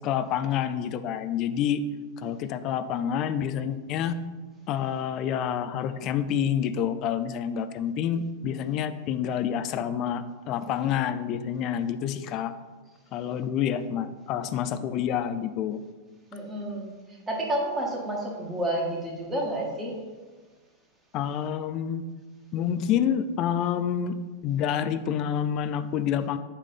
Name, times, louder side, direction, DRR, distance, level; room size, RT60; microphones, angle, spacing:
voice 1, 0.0-1.8 2.2-4.2 4.7-12.5 13.1-15.8 21.1-22.0 22.5-24.1 24.4-26.4, left 9 dB, 40° left, 11 dB, 0.4 m, -28 dB
voice 2, 16.3-16.9 17.3-19.9, right 1 dB, 15° right, -2 dB, 1.9 m, -30 dB
8.4 x 3.3 x 5.5 m, 1.3 s
figure-of-eight pair, 90°, 0 cm